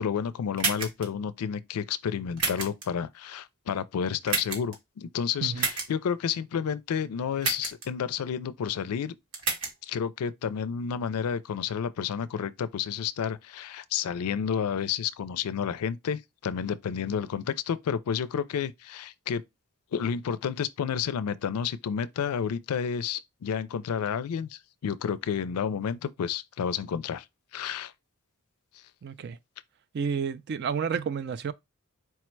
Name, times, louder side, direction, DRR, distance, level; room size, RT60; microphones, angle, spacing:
voice 1, 0.0-9.2 9.8-19.4 19.9-27.2 27.5-27.9, left 7 dB, 85° left, 0.4 m, -30 dB
sound 1, 0.6-1.1 2.4-2.8 4.3-4.7 5.6-5.9 7.4-7.9 9.3-9.7, right 4 dB, 85° right, 1.4 m, -29 dB
voice 2, 29.0-29.4 29.9-31.5, right 6 dB, 50° right, 0.3 m, -30 dB
4.5 x 2.1 x 4.4 m
head